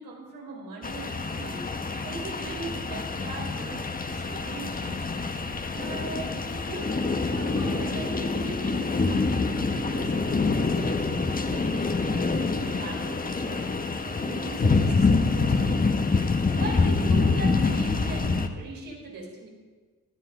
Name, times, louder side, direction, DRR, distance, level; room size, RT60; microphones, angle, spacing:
voice 1, 0.0-5.2 5.7-6.9 7.3-13.7 14.0-16.1 16.5-19.5, right 3 dB, 80° right, -2 dB, 4.6 m, -40 dB
sound 1, 0.8-18.5, left 4 dB, 25° left, 1.2 m, -26 dB
17.0 x 11.5 x 5.0 m, 1.4 s
cardioid pair, 70°, 34 cm